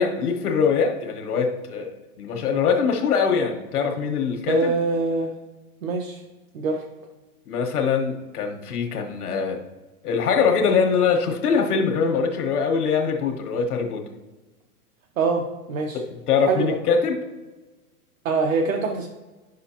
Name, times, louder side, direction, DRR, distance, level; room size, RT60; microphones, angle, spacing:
voice 1, 0.0-4.7 7.5-9.6 10.0-14.0 15.9-17.2, left 6 dB, 75° left, 3 dB, 1.4 m, -23 dB
voice 2, 4.5-5.3 5.8-6.2 6.5-6.8 15.2-16.0 16.5-16.7 18.2-19.1, right 4 dB, 60° right, 3 dB, 0.8 m, -24 dB
9.9 x 6.2 x 2.9 m, 1.2 s
hypercardioid pair, 180°, 46 cm